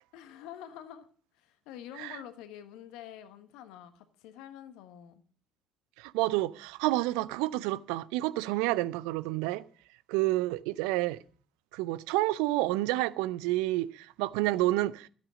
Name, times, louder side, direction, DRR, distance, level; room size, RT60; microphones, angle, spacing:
voice 1, 0.1-1.1 1.4-5.2, left 10 dB, 70° left, 1.3 m, -47 dB
voice 2, 6.0-9.6 10.1-11.2 11.7-15.1, right 17 dB, 75° right, 0.5 m, -29 dB
12.5 x 8.8 x 6.3 m
hypercardioid pair, 50°, 0 cm